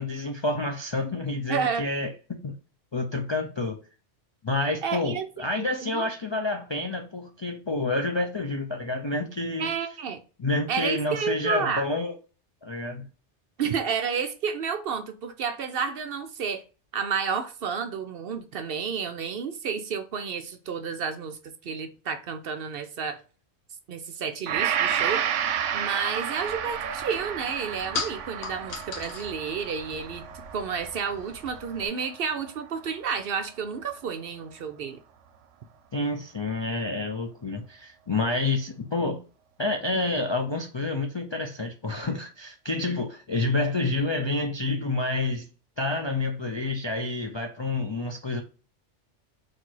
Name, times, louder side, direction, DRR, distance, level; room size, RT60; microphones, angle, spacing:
voice 1, 0.0-2.6 2.9-3.8 4.4-9.7 10.4-12.1 12.6-13.1 35.9-39.2 39.6-45.5 45.8-48.4, left 2 dB, 40° left, 0.3 m, -28 dB
voice 2, 1.5-1.9 4.8-5.3 5.6-6.1 9.6-10.2 10.7-11.9 13.6-16.6 16.9-23.2 23.9-25.2 25.7-30.2 30.5-35.0, right 6 dB, 60° right, 0.7 m, -31 dB
Gong, 24.5-32.8 33.2-33.3, right 9 dB, 85° right, 0.9 m, -31 dB
sound 1, 26.4-31.9, left 5 dB, 70° left, 1.0 m, -39 dB
4.2 x 2.6 x 4.5 m
omnidirectional pair, 1.2 m